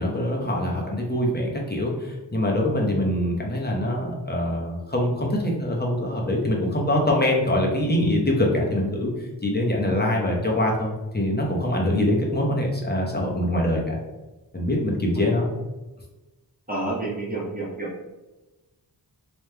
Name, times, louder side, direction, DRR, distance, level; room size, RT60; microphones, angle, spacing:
voice 1, 0.0-14.0 14.5-15.5, left 1 dB, 25° left, -2 dB, 0.9 m, -24 dB
voice 2, 16.7-18.1, right 2 dB, 20° right, -5 dB, 1.1 m, -30 dB
3.4 x 3.1 x 3.3 m, 1.1 s
wide cardioid pair, 60°, 42 cm